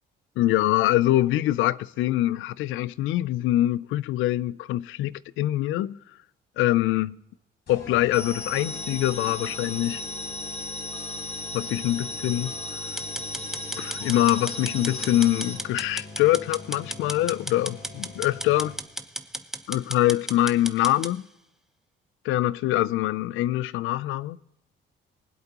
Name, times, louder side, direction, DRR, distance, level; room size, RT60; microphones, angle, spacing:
voice 1, 0.4-6.0 6.6-7.2 7.7-10.0 11.5-12.5 13.8-18.7 19.7-21.2 22.2-24.4, left 15 dB, 90° left, 0.4 m, -24 dB
sound 1, 7.7-19.1, left 2 dB, 55° left, 4.7 m, -44 dB
sound 2, 8.1-15.6, left 2 dB, 35° left, 3.7 m, -35 dB
sound 3, 13.0-21.1, right 1 dB, ahead, 0.8 m, -35 dB
23.0 x 8.1 x 2.9 m
cardioid pair, 90°, 20 cm